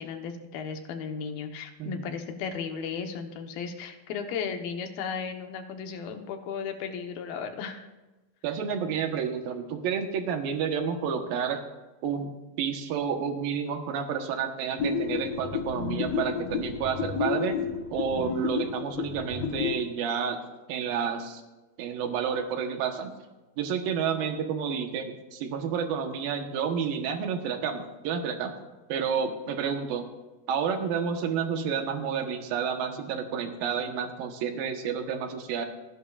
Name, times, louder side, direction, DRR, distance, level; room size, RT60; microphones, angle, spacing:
voice 1, 0.0-7.9, left 6 dB, 80° left, 5 dB, 3.0 m, -35 dB
voice 2, 8.4-11.6 12.0-12.3 12.6-17.6 17.9-20.4 20.7-21.4 21.8-23.2 23.6-28.5 28.9-30.0 30.5-35.7, right 7 dB, 75° right, 5 dB, 2.9 m, -30 dB
sound 1, 14.8-19.8, left 5 dB, 60° left, 1.9 m, -31 dB
26.0 x 11.0 x 2.5 m, 1.1 s
omnidirectional pair, 4.3 m